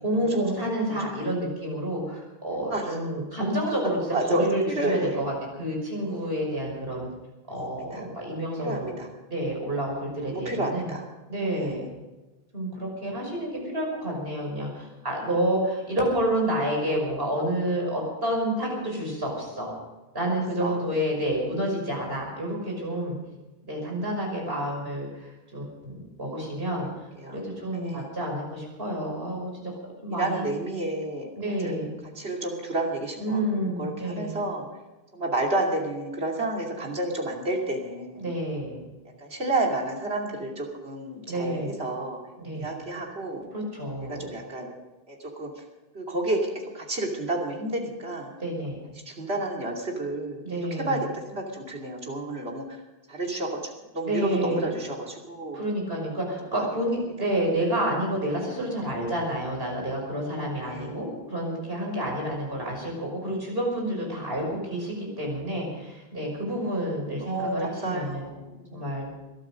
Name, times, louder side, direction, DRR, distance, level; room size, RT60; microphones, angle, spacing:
voice 1, 0.0-4.0 4.2-7.1 7.5-9.0 9.3-10.9 11.3-11.9 12.5-19.7 20.1-23.2 23.7-26.9 27.3-29.8 30.0-30.4 31.3-31.9 33.2-34.4 38.2-38.9 41.3-41.7 42.4-42.8 43.5-44.2 48.4-48.8 50.4-51.0 54.0-54.7 55.5-68.2 68.7-69.1, right 1 dB, 70° right, -1 dB, 6.1 m, -29 dB
voice 2, 0.9-1.3 2.7-3.0 4.1-5.2 7.7-8.0 8.6-9.1 10.2-11.0 11.6-11.8 20.6-20.8 27.2-27.4 27.7-28.1 30.2-31.3 31.6-31.7 32.2-34.7 35.1-38.3 39.2-42.2 42.5-43.5 44.1-44.7 45.1-45.5 45.9-46.4 46.7-48.3 49.1-50.4 50.7-52.8 53.1-55.6 56.5-56.7 60.6-61.1 67.2-68.8, right 2 dB, 90° right, -1 dB, 3.0 m, -30 dB
21.5 x 12.5 x 5.2 m, 1.1 s
omnidirectional pair, 1.0 m